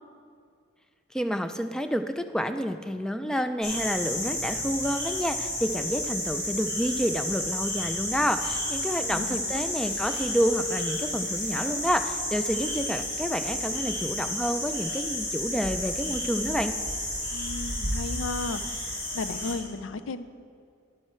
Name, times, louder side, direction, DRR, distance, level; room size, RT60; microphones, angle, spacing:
voice 1, 1.1-16.7, equal, 5° left, 8 dB, 0.3 m, -29 dB
sound 1, 3.6-19.5, left 1 dB, 50° left, 2.7 m, -31 dB
voice 2, 9.0-9.6 17.3-20.2, left 3 dB, 70° left, 12 dB, 0.4 m, -35 dB
10.5 x 7.7 x 4.4 m, 2.3 s
head